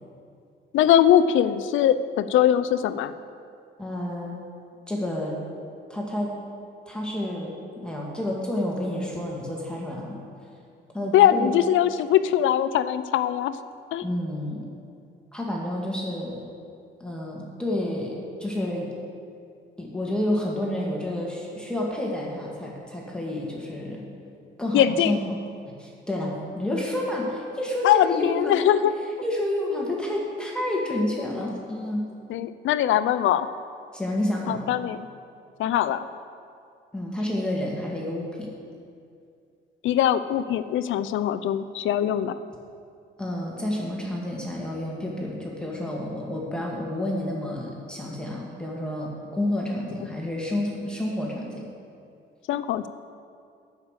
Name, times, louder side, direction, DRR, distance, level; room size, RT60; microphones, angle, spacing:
voice 1, 0.7-3.1 11.1-13.5 13.9-14.0 24.7-25.2 27.8-28.9 32.3-33.5 34.5-35.1 35.6-36.1 39.8-42.3 52.5-52.9, left 10 dB, 80° left, 13 dB, 0.5 m, -21 dB
voice 2, 3.8-4.4 4.9-5.4 5.9-6.3 6.9-10.2 10.9-11.5 14.0-14.7 15.3-16.4 17.0-18.9 19.8-24.1 24.6-25.4 25.8-28.6 29.2-32.0 33.9-34.7 36.9-38.5 43.2-51.7, left 1 dB, 5° left, -3 dB, 2.0 m, -29 dB
9.5 x 6.7 x 8.2 m, 2.4 s
cardioid pair, 90°, 20 cm